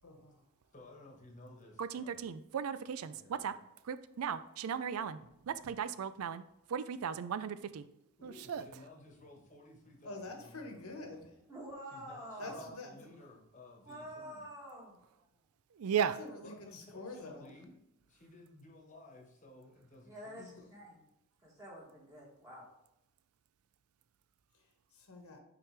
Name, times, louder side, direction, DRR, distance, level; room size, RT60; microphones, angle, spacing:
voice 1, 0.0-0.7 10.0-11.4 12.4-13.0 16.0-17.5 20.4-20.7 24.5-25.4, left 2 dB, 80° left, 3 dB, 1.4 m, -47 dB
voice 2, 0.7-2.2 3.0-3.5 8.2-11.2 11.9-14.5 16.4-17.8 18.0-20.7, left 2 dB, 35° left, 0 dB, 1.3 m, -56 dB
voice 3, 1.8-3.5 3.8-5.2 5.4-6.4 6.7-7.8 8.2-8.7 15.7-16.1, right 7 dB, 80° right, 13 dB, 0.4 m, -36 dB
voice 4, 11.5-12.6 13.8-15.3 20.0-21.0 21.4-22.7, equal, 15° right, -4 dB, 2.1 m, -48 dB
6.0 x 4.8 x 3.3 m, 0.87 s
head